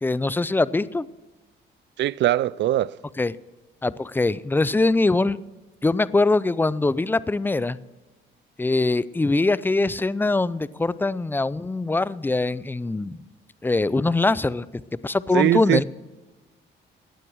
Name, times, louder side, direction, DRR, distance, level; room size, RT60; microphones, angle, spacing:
voice 1, 0.0-1.1 3.2-3.3 3.8-5.4 5.8-7.8 8.6-13.2 13.6-14.6 15.0-15.8, left 2 dB, 10° left, 0.4 m, -22 dB
voice 2, 2.0-3.0 15.3-15.8, right 13 dB, 65° right, 0.4 m, -21 dB
16.0 x 9.3 x 6.3 m
cardioid pair, 90°, 20 cm